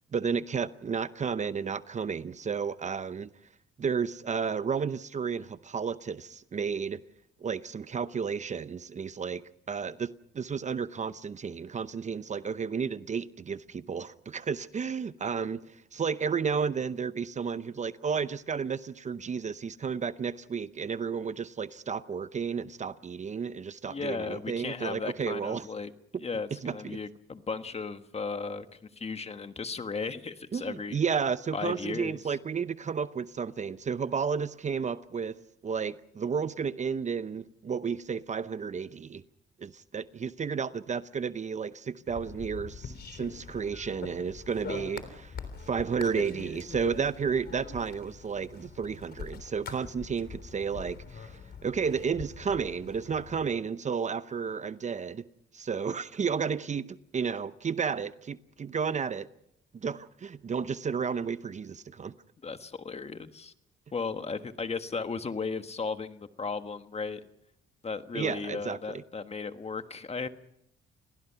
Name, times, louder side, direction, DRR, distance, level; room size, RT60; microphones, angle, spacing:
voice 1, 0.1-3.3 3.8-7.0 7.4-9.4 9.7-25.7 26.6-27.0 30.5-39.2 39.6-45.3 45.6-55.3 55.5-59.3 59.7-62.1 68.1-69.0, right 6 dB, 35° right, 0.7 m, -32 dB
voice 2, 23.8-25.9 26.2-31.0 31.5-32.4 62.4-63.5 63.9-67.2 67.8-70.3, left 4 dB, 30° left, 1.5 m, -35 dB
sound 1, 42.1-53.5, left 5 dB, 55° left, 3.5 m, -43 dB
29.0 x 19.0 x 5.8 m
cardioid pair, 90°, 20 cm